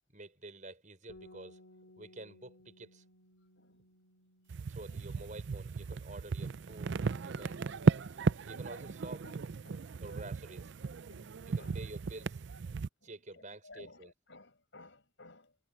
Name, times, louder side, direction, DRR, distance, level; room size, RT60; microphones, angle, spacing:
voice 1, 0.1-1.6 2.0-3.0 4.7-6.9 7.2-7.6 8.5-9.3 10.0-10.7 11.6-12.4 13.0-14.1, right 2 dB, 40° right, 5.9 m, -49 dB
Bass guitar, 1.1-7.3, left 1 dB, 75° left, 2.0 m, -61 dB
voice 2, 3.6-3.9 4.9-5.3 6.7-7.0 8.1-8.8 9.2-10.3 11.1-11.9 13.0-15.6, left 2 dB, 60° left, 6.8 m, -58 dB
sound 1, 4.5-12.9, right 4 dB, 60° right, 0.5 m, -35 dB
head